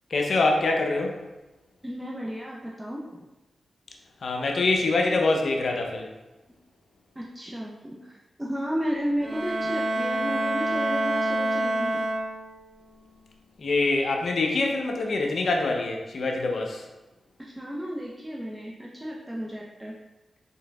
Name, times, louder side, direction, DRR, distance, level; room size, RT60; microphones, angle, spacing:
voice 1, 0.1-1.2 4.2-6.1 13.6-16.8, left 3 dB, 70° left, 1 dB, 0.6 m, -25 dB
voice 2, 1.8-3.3 7.1-12.0 17.4-19.9, equal, 15° right, -3 dB, 0.7 m, -33 dB
Bowed string instrument, 9.2-12.7, right 1 dB, 35° right, 0.9 m, -27 dB
4.3 x 3.6 x 2.3 m, 1.0 s
supercardioid pair, 40°, 0 cm